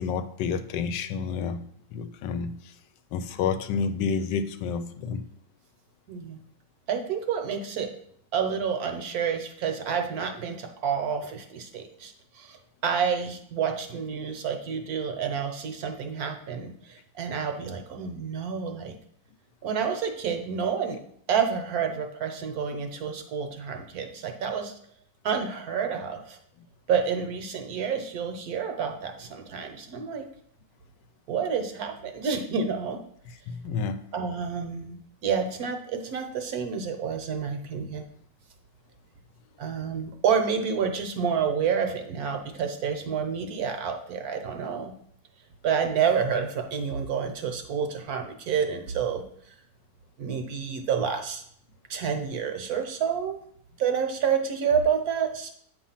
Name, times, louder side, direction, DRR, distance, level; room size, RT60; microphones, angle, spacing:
voice 1, 0.0-2.7 3.1-5.2 33.5-34.0, left 6 dB, 85° left, 11 dB, 1.2 m, -30 dB
voice 2, 6.1-6.4 6.9-7.9 8.3-19.0 19.6-21.0 21.3-24.8 25.2-26.4 26.9-30.2 31.3-33.0 34.1-38.0 39.6-44.9 45.6-49.2 50.2-51.4 51.9-53.4 53.8-55.5, right 6 dB, 65° right, 5 dB, 1.2 m, -29 dB
8.4 x 3.0 x 5.6 m, 0.68 s
omnidirectional pair, 1.9 m